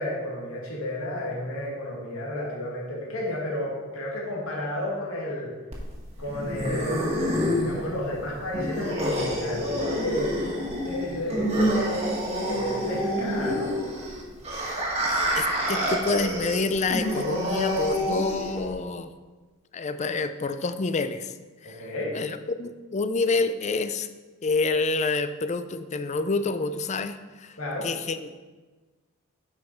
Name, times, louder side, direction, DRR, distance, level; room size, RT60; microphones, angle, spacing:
voice 1, 0.0-5.5 6.2-10.3 10.8-11.9 12.5-13.7 21.6-22.1 27.6-27.9, left 1 dB, 85° left, -3 dB, 2.0 m, -32 dB
sound 1, 5.7-18.7, equal, 30° right, 1.7 m, -28 dB
voice 2, 15.3-19.1 19.7-21.3 21.6-21.9 22.1-24.1 24.4-27.6 27.8-28.5, left 3 dB, 35° left, 11 dB, 0.4 m, -28 dB
9.2 x 5.4 x 4.5 m, 1.3 s
head